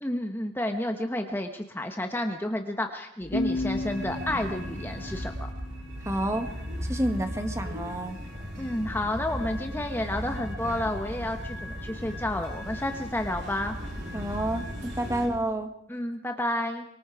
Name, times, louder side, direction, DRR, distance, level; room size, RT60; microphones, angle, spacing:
voice 1, 0.0-5.5 8.6-13.8 15.9-16.8, left 1 dB, 10° left, 5 dB, 1.2 m, -31 dB
sound 1, 3.2-15.3, equal, 60° right, 6.9 m, -37 dB
sound 2, 3.3-6.7, left 2 dB, 90° left, 2.5 m, -34 dB
voice 2, 6.0-6.5 6.9-8.2 14.1-15.7, right 1 dB, 15° right, 6 dB, 1.8 m, -29 dB
24.5 x 24.0 x 4.9 m, 0.78 s
head